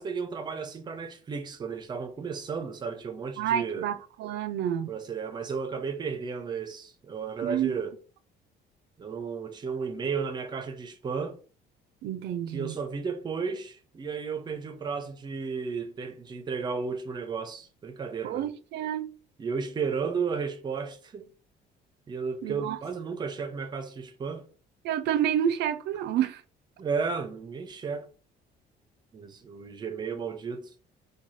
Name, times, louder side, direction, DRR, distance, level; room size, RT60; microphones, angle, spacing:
voice 1, 0.0-3.9 4.9-8.0 9.0-11.4 12.5-18.5 19.4-21.3 22.1-24.5 26.8-28.1 29.1-30.7, right 5 dB, 25° right, 0.5 m, -33 dB
voice 2, 3.4-4.9 7.4-7.8 12.0-12.7 18.2-19.1 22.4-22.8 24.8-26.4, right 10 dB, 75° right, 0.5 m, -29 dB
4.6 x 2.3 x 4.1 m
cardioid pair, 175°, 18 cm